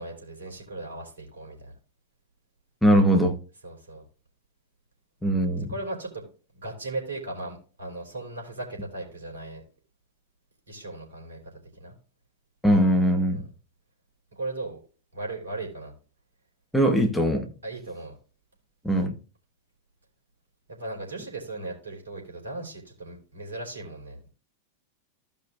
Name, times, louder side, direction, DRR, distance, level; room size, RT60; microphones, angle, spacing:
voice 1, 0.0-1.7 3.6-4.0 5.7-6.3 6.5-9.6 10.7-11.4 11.7-12.0 13.3-13.4 14.4-14.8 15.1-15.9 17.6-18.1 20.7-24.3, right 2 dB, 70° right, 3.6 m, -37 dB
voice 2, 2.8-3.4 5.2-5.7 12.6-13.4 16.7-17.5 18.8-19.1, equal, 5° left, 1.2 m, -21 dB
15.5 x 5.5 x 2.4 m
figure-of-eight pair, 90°, 0 cm